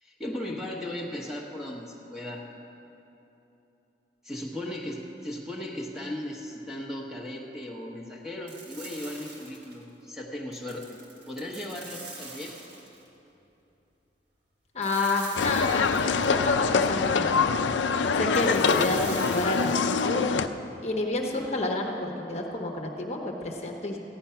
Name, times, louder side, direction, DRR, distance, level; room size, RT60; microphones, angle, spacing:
voice 1, 0.0-2.5 4.2-11.0 11.3-12.6, left 1 dB, 5° right, -2 dB, 1.2 m, -37 dB
sound 1, 8.5-9.8 10.5-13.1 14.8-16.5 18.3-20.0, right 3 dB, 75° right, 2.2 m, -44 dB
voice 2, 14.7-15.9 16.3-17.5 18.1-20.2 20.8-24.0, left 2 dB, 35° left, 1 dB, 1.1 m, -29 dB
sound 2, 15.4-20.5, left 5 dB, 90° left, 0.5 m, -24 dB
14.5 x 10.5 x 5.8 m, 2.9 s
head